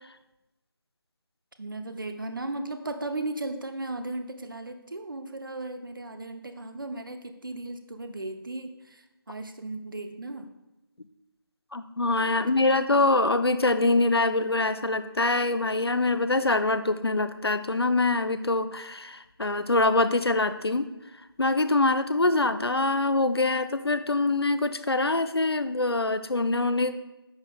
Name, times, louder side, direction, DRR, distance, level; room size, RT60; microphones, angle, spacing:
voice 1, 1.6-10.5 12.3-12.6, right 2 dB, 60° right, 7 dB, 0.8 m, -36 dB
voice 2, 11.7-20.9 21.4-26.9, left 2 dB, 80° left, 10 dB, 0.6 m, -24 dB
10.5 x 7.5 x 2.3 m, 0.96 s
figure-of-eight pair, 165°, 13 cm